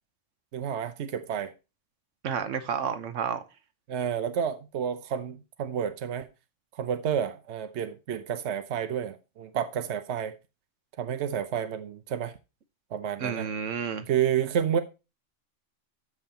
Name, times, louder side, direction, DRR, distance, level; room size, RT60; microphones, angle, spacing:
voice 1, 0.5-1.5 3.9-6.3 6.8-10.3 11.0-12.3 12.9-13.5 14.1-14.8, right 8 dB, 70° right, 1.0 m, -30 dB
voice 2, 2.2-3.4 13.2-14.1, right 7 dB, 90° right, 1.3 m, -31 dB
13.0 x 5.4 x 2.8 m
omnidirectional pair, 1.2 m